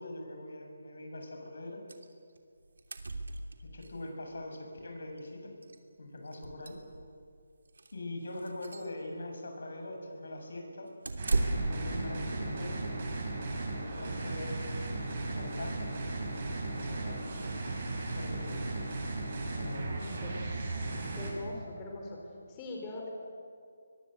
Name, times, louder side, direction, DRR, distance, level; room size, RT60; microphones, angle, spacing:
voice 1, 0.0-1.8 3.7-5.5 6.0-6.8 7.9-10.9 11.6-12.9 13.6-14.7 15.3-15.9 16.8-17.4 18.1-18.7 19.5-20.1, left 1 dB, 70° left, 3 dB, 7.5 m, -42 dB
sound 1, 1.9-2.1 2.4-2.5 2.6-3.9 5.2-5.3 5.6-5.8 6.3-7.2 7.7-7.9 8.4-8.9 11.0-11.9, right 2 dB, 80° right, 2.9 m, -34 dB
sound 2, 11.2-21.3, right 2 dB, 40° right, 7.7 m, -36 dB
voice 2, 19.8-20.5 21.1-22.2 22.5-23.1, left 1 dB, 20° left, -1 dB, 4.2 m, -41 dB
23.0 x 23.0 x 8.2 m, 2.3 s
figure-of-eight pair, 165°, 0 cm